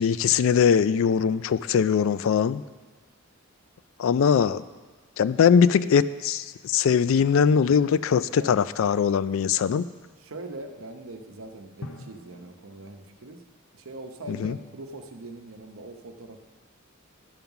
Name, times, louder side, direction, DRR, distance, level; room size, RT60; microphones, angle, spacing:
voice 1, 0.0-2.6 4.0-4.6 5.2-9.9 14.3-14.6, left 7 dB, 65° left, 16 dB, 0.3 m, -21 dB
voice 2, 10.2-13.4 13.7-16.4, right 2 dB, 70° right, 6 dB, 0.8 m, -42 dB
Drum, 11.8-14.0, left 2 dB, 85° left, 0.7 m, -46 dB
11.5 x 5.5 x 5.8 m, 1.3 s
head